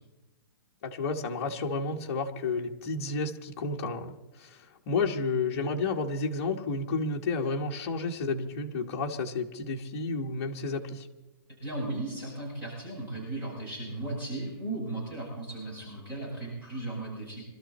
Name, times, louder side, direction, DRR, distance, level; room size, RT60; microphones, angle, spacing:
voice 1, 0.8-11.1, left 3 dB, 35° left, 0 dB, 1.5 m, -31 dB
voice 2, 11.6-17.4, right 2 dB, 15° right, -7 dB, 7.5 m, -36 dB
24.5 x 13.0 x 4.3 m, 1.0 s
hypercardioid pair, 175°, 13 cm